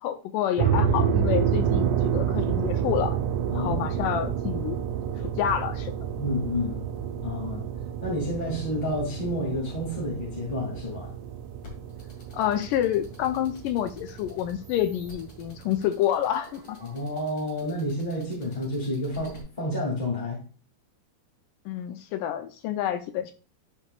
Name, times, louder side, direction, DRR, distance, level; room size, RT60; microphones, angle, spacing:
voice 1, 0.0-3.2 3.5-4.8 5.2-5.9 12.3-16.8 21.7-23.3, left 11 dB, 80° left, 8 dB, 1.9 m, -28 dB
sound 1, 0.6-15.8, right 8 dB, 75° right, 2.0 m, -29 dB
voice 2, 3.5-3.8 6.2-6.8 7.2-7.7 8.0-11.1 16.8-20.4, left 1 dB, 15° left, -4 dB, 2.0 m, -30 dB
sound 2, 11.6-19.4, left 4 dB, 40° left, 3.1 m, -50 dB
11.5 x 5.5 x 2.4 m, 0.37 s
omnidirectional pair, 4.4 m